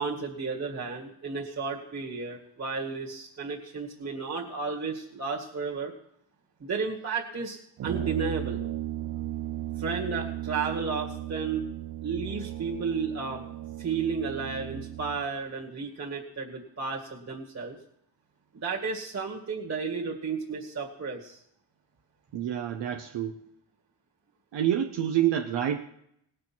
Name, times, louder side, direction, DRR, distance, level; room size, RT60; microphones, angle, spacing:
voice 1, 0.0-5.9 6.6-8.6 9.8-11.7 12.0-13.4 13.8-17.8 18.5-21.4, right 5 dB, 40° right, -3 dB, 2.1 m, -33 dB
Brass instrument, 7.8-15.3, right 13 dB, 55° right, 0.5 m, -36 dB
voice 2, 22.3-23.4 24.5-25.9, right 10 dB, 85° right, 4 dB, 0.9 m, -27 dB
18.5 x 6.6 x 6.1 m, 0.73 s
cardioid pair, 85°, 42 cm